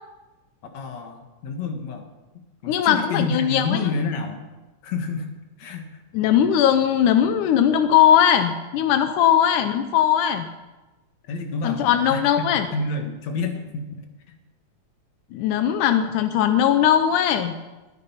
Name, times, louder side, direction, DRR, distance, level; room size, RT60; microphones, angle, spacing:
voice 1, 0.7-2.1 2.3-4.5 4.8-5.3 5.6-6.0 11.3-12.5 12.7-14.4, left 4 dB, 65° left, 4 dB, 2.9 m, -29 dB
voice 2, 2.7-3.8 6.1-10.5 11.6-12.7 15.3-17.6, left 9 dB, 90° left, 8 dB, 2.3 m, -19 dB
21.5 x 9.2 x 5.8 m, 1.1 s
omnidirectional pair, 3.5 m